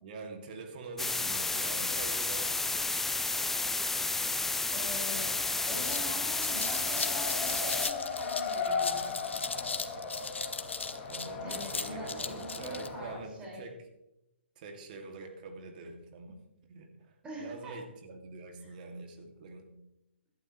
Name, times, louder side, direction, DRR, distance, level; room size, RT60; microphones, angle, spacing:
voice 1, 0.0-2.8 11.1-13.8 14.6-16.4 16.7-19.7, right 3 dB, 45° right, 4 dB, 2.4 m, -45 dB
sound 1, 1.0-7.9, left 3 dB, 5° left, 0.4 m, -31 dB
voice 2, 4.7-5.3 5.6-9.1 11.4-13.6 17.2-17.8, equal, 15° right, -5 dB, 5.4 m, -43 dB
Race car auto racing, 5.0-13.2, left 5 dB, 30° left, 2.6 m, -38 dB
sound 2, 5.8-12.9, left 4 dB, 85° left, 1.3 m, -38 dB
17.0 x 12.0 x 3.2 m, 0.87 s
hypercardioid pair, 135°, 6 cm